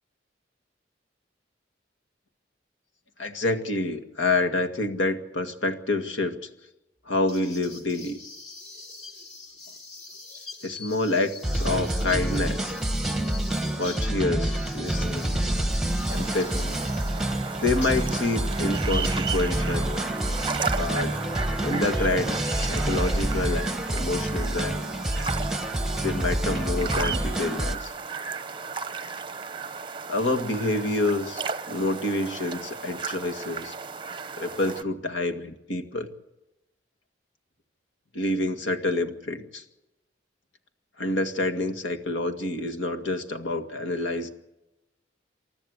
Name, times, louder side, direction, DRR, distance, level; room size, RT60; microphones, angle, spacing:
voice 1, 3.2-6.5 7.1-8.2 10.6-12.8 13.8-15.4 16.1-16.8 17.6-19.9 20.8-21.2 21.6-24.8 26.0-27.9 30.1-33.7 34.4-36.1 38.1-39.6 41.0-44.3, left 2 dB, 85° left, 6 dB, 2.0 m, -28 dB
sound 1, 7.3-17.2 17.8-19.6, left 3 dB, 35° left, 2.7 m, -43 dB
sound 2, 11.4-27.8, right 1 dB, 5° right, 1.0 m, -28 dB
sound 3, 16.1-34.8, right 5 dB, 25° right, 0.7 m, -35 dB
28.5 x 13.5 x 8.1 m, 0.95 s
head